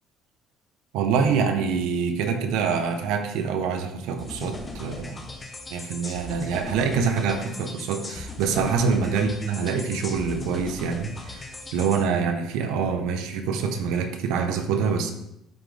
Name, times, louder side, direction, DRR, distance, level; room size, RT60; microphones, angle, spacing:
voice 1, 0.9-5.2 5.7-11.4 11.7-15.1, right 5 dB, 85° right, 6 dB, 0.9 m, -25 dB
sound 1, 4.2-12.0, left 2 dB, 15° left, 0.8 m, -38 dB
11.0 x 3.9 x 3.5 m, 0.79 s
cardioid pair, 170°, 0 cm